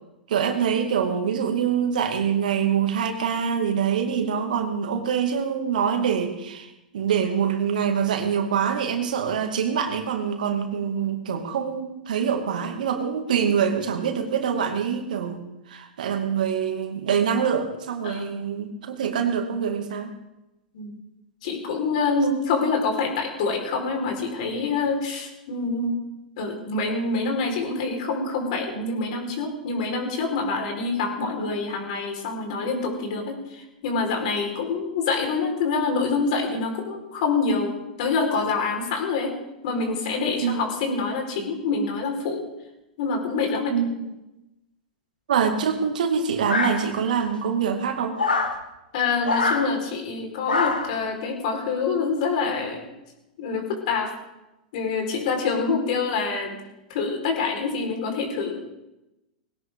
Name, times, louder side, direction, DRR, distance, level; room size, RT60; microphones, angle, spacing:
voice 1, 0.3-20.1 40.4-40.6 43.7-44.1 45.3-48.2, right 7 dB, 65° right, 5 dB, 2.2 m, -25 dB
voice 2, 21.4-26.0 26.4-39.4 39.6-42.4 43.0-43.8 48.9-52.8 53.4-54.1 54.7-56.6 56.9-58.6, left 4 dB, 55° left, 2 dB, 4.5 m, -26 dB
sound 1, 46.5-47.2 48.2-48.6 49.2-49.7 50.5-51.0, left 3 dB, 85° left, 1.8 m, -24 dB
20.0 x 17.5 x 3.7 m, 0.95 s
figure-of-eight pair, 100°, 5 cm